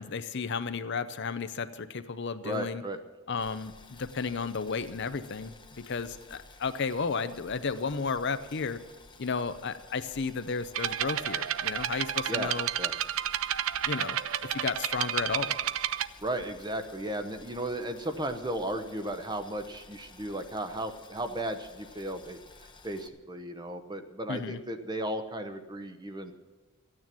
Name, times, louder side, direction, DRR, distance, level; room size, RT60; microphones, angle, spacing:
voice 1, 0.0-2.8 3.3-5.5 5.9-8.8 9.2-12.7 13.9-14.2 14.4-15.6 24.3-24.6, left 5 dB, 55° left, 11 dB, 0.6 m, -33 dB
voice 2, 2.4-3.0 12.3-12.5 12.8-12.9 16.2-26.3, right 1 dB, 20° right, 8 dB, 0.9 m, -35 dB
Boiling, 3.4-23.1, left 3 dB, 20° left, 0.9 m, -54 dB
sound 1, 10.7-16.1, right 10 dB, 70° right, 0.5 m, -31 dB
14.0 x 9.6 x 7.5 m, 1.3 s
head